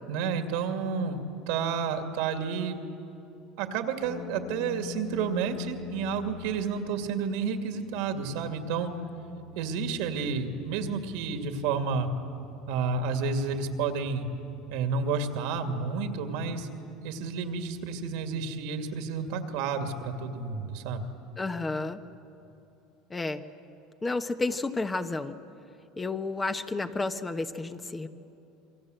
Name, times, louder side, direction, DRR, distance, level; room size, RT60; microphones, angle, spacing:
voice 1, 0.1-2.8 3.6-8.9 9.6-12.1 12.7-14.3 14.7-16.7 17.0-21.1, right 5 dB, 75° right, 6 dB, 2.4 m, -30 dB
sound 1, 4.0-18.1, left 7 dB, 70° left, 5.8 m, -46 dB
voice 2, 21.4-22.0 23.1-23.4 24.0-25.4 26.0-28.1, left 3 dB, 15° left, 8 dB, 1.1 m, -31 dB
27.5 x 23.5 x 8.0 m, 2.8 s
supercardioid pair, 105°, 0 cm